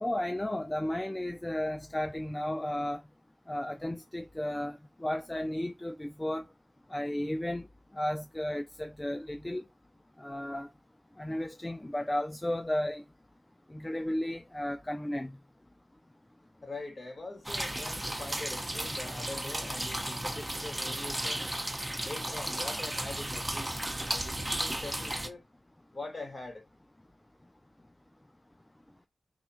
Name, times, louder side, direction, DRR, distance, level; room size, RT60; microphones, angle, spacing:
voice 1, 0.0-3.0 3.5-6.4 6.9-7.7 7.9-9.7 10.2-10.7 11.2-13.0 13.7-15.3, left 1 dB, 20° left, 0.5 m, -33 dB
voice 2, 16.6-21.5 22.0-25.4 25.9-26.7, left 2 dB, 40° left, 1.9 m, -43 dB
sound 1, 17.4-25.3, right 1 dB, 15° right, 0.9 m, -34 dB
3.6 x 2.4 x 4.3 m
cardioid pair, 40°, 0 cm